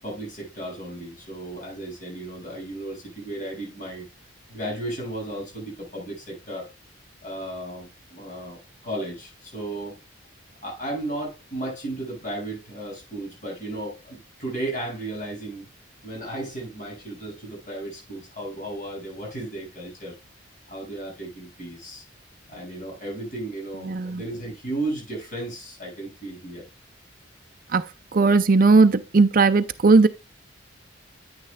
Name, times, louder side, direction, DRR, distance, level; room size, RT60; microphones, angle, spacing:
voice 1, 0.0-4.1 4.5-6.7 7.2-10.0 10.6-15.7 16.0-20.2 20.7-22.1 22.5-26.6, right 1 dB, 40° left, 7.0 m, -34 dB
voice 2, 23.9-24.2 27.7-27.8 28.1-30.1, right 3 dB, 45° right, 0.5 m, -17 dB
9.8 x 9.6 x 2.3 m
head